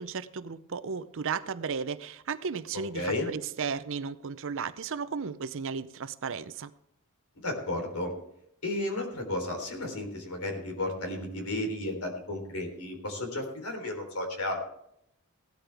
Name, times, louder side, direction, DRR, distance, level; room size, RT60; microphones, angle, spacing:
voice 1, 0.0-6.7, right 5 dB, 60° right, 0.6 m, -34 dB
voice 2, 2.9-3.3 7.4-8.1 8.6-14.6, left 1 dB, 85° left, 3.7 m, -33 dB
17.0 x 12.5 x 3.5 m
head